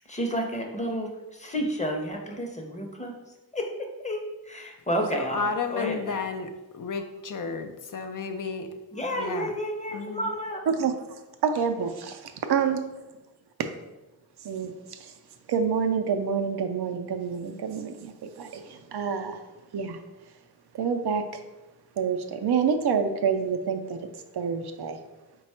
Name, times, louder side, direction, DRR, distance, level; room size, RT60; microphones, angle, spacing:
voice 1, 0.1-3.1 3.5-5.4 5.7-6.2 8.9-10.6, equal, 20° left, 2 dB, 0.7 m, -31 dB
voice 2, 5.1-8.7 9.2-9.5 9.9-10.3, left 5 dB, 55° left, 6 dB, 0.4 m, -32 dB
voice 3, 11.4-12.2 12.5-12.8 13.6-13.7 14.4-15.1 15.5-19.4 19.7-20.0 20.7-21.4 22.0-24.0 24.3-25.0, right 6 dB, 80° right, 6 dB, 0.5 m, -27 dB
4.0 x 2.3 x 4.2 m, 1.1 s
cardioid pair, 50°, 39 cm